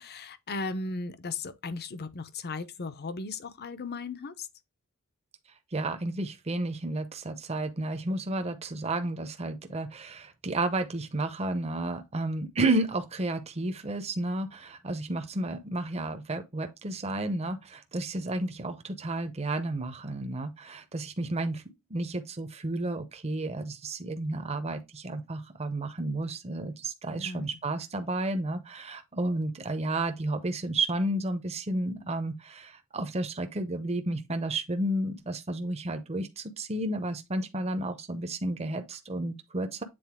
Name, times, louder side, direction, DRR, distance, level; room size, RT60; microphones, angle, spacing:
voice 1, 0.0-4.5 27.1-27.5, left 3 dB, 45° left, 0.7 m, -36 dB
voice 2, 5.7-21.6 21.9-39.8, right 2 dB, 30° right, 0.7 m, -32 dB
7.8 x 3.9 x 3.5 m
head